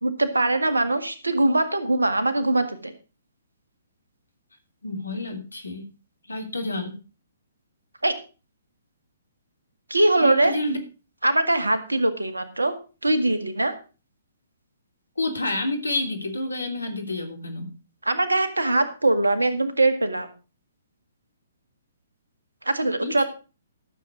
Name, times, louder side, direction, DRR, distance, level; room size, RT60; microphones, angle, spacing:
voice 1, 0.0-2.9 8.0-8.1 9.9-10.5 11.2-12.7 13.0-13.7 18.0-20.3 22.6-23.2, right 2 dB, 75° right, 9 dB, 1.8 m, -22 dB
voice 2, 4.8-5.9 6.3-6.9 10.2-10.8 15.2-17.7 23.0-23.2, left 2 dB, 75° left, 6 dB, 3.0 m, -29 dB
13.0 x 7.4 x 5.1 m, 0.33 s
figure-of-eight pair, 125°, 0 cm